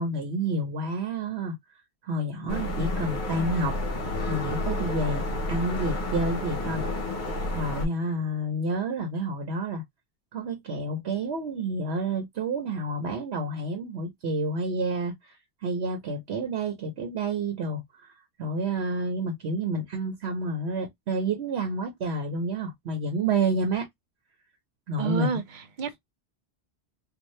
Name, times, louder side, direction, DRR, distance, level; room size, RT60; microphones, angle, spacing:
voice 1, 0.0-1.5 2.0-3.8 4.3-5.2 5.5-6.8 7.5-9.8 10.3-15.3 15.6-18.1 18.4-23.9 24.9-25.4, right 2 dB, 75° right, 1.1 m, -29 dB
sound 1, 2.5-7.9, left 1 dB, 50° left, 1.0 m, -30 dB
voice 2, 25.0-26.0, right 6 dB, 55° right, 0.7 m, -30 dB
2.7 x 2.5 x 3.0 m
omnidirectional pair, 1.1 m